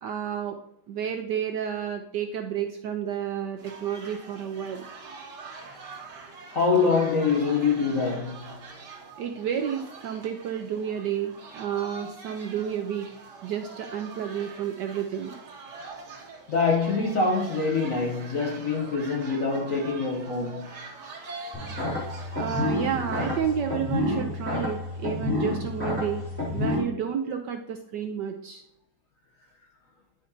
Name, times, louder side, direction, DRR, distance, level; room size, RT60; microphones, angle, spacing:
voice 1, 0.0-0.6 0.9-4.8 9.2-13.1 13.4-15.3 22.4-26.2 26.5-28.6, right 8 dB, 75° right, 1.0 m, -31 dB
sound 1, 3.6-23.4, right 4 dB, 55° right, 1.7 m, -43 dB
voice 2, 6.5-8.6 16.5-20.7, left 4 dB, 60° left, 0.9 m, -25 dB
sound 2, 21.5-26.8, left 2 dB, 5° left, 2.2 m, -29 dB
10.5 x 5.0 x 2.7 m
omnidirectional pair, 2.3 m